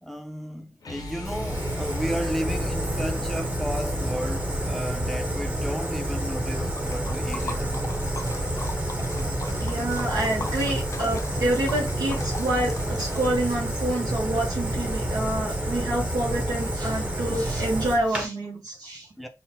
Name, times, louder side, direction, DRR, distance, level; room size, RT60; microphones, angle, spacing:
voice 1, 0.0-7.9 19.2-19.3, equal, ahead, 0.6 m, -33 dB
sound 1, 0.8-6.9, left 3 dB, 80° left, 0.8 m, -37 dB
Fire, 1.2-18.2, right 1 dB, 20° right, 0.9 m, -29 dB
Liquid, 6.6-13.7, left 3 dB, 50° left, 0.6 m, -39 dB
voice 2, 9.6-19.1, right 1 dB, 75° right, 0.8 m, -28 dB
5.6 x 2.1 x 2.7 m
cardioid pair, 55°, 7 cm